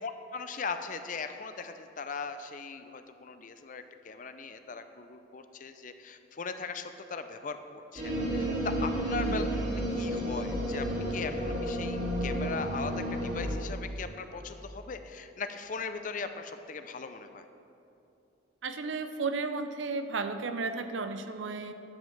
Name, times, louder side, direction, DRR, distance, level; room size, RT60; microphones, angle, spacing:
voice 1, 0.0-9.4 9.9-17.4, left 4 dB, 45° left, 9 dB, 0.5 m, -39 dB
sound 1, 8.0-13.5, equal, 40° right, 2.4 m, -31 dB
voice 2, 18.6-21.7, right 4 dB, 80° right, 9 dB, 0.6 m, -34 dB
11.0 x 5.4 x 7.1 m, 2.8 s
head